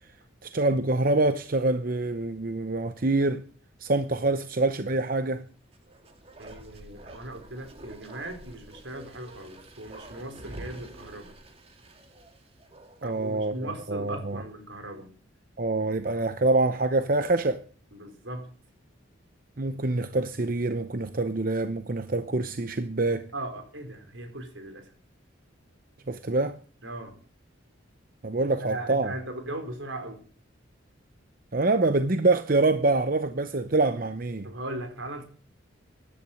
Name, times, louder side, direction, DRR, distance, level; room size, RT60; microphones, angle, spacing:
voice 1, 0.4-3.5 3.8-5.5 13.0-14.4 15.6-17.6 19.6-23.3 26.1-26.6 28.2-29.1 31.5-34.5, right 2 dB, 45° right, 0.8 m, -25 dB
Bark, 5.6-13.2 13.5-13.6, right 1 dB, 30° right, 2.3 m, -47 dB
voice 2, 6.4-11.3 13.0-15.1 17.9-18.6 23.3-24.9 26.8-27.2 28.6-30.2 34.4-35.2, right 1 dB, 75° right, 4.5 m, -38 dB
16.0 x 11.0 x 7.9 m
head